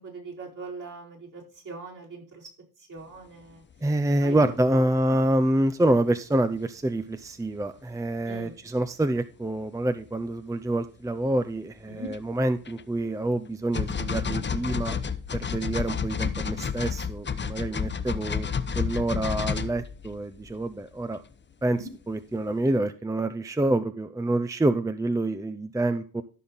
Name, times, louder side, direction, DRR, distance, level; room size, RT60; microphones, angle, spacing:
voice 1, 0.0-2.5 2.9-3.6 4.2-5.2 8.3-8.6 11.8-12.1 18.0-18.2 21.7-21.9, right 3 dB, 55° right, -3 dB, 4.8 m, -41 dB
sound 1, 3.7-3.8 12.1-12.2 12.7-12.8 13.7-20.5 21.2-21.3, left 6 dB, 30° left, 0.9 m, -30 dB
voice 2, 3.8-15.0 15.3-18.5 18.7-21.2 21.6-26.2, right 1 dB, 10° right, 11 dB, 0.6 m, -27 dB
14.0 x 5.8 x 4.0 m, 0.37 s
cardioid pair, 80°, 38 cm